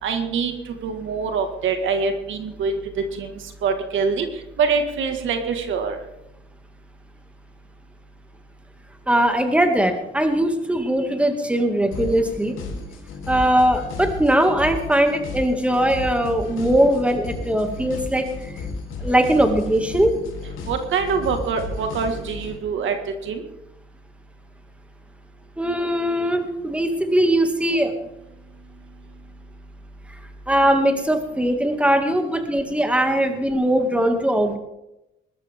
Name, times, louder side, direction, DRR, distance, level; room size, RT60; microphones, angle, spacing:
voice 1, 0.0-0.5 0.8-2.7 3.1-3.3 3.6-4.3 4.6-6.0 20.7-23.0 23.2-23.4, right 5 dB, 75° right, 6 dB, 1.9 m, -24 dB
voice 2, 9.1-12.6 13.3-18.6 19.0-20.1 25.6-27.9 30.5-34.6, right 1 dB, 5° right, 5 dB, 2.2 m, -20 dB
sound 1, 11.9-22.6, left 3 dB, 90° left, 3.2 m, -33 dB
21.0 x 12.5 x 3.7 m, 0.88 s
cardioid pair, 90°, 20 cm